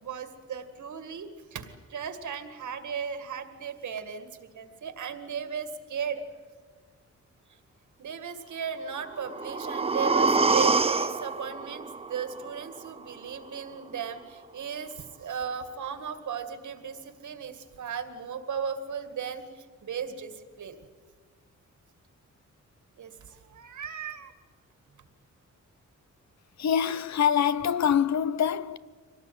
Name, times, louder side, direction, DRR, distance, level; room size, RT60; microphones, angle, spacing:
voice 1, 0.0-6.2 8.0-20.8 23.0-24.3, right 6 dB, 75° right, 2.1 m, -36 dB
sound 1, 9.0-13.0 13.4-13.5, right 4 dB, 20° right, 0.6 m, -26 dB
voice 2, 26.6-28.8, left 8 dB, 60° left, 0.7 m, -25 dB
24.5 x 18.5 x 9.4 m
wide cardioid pair, 155°, 30 cm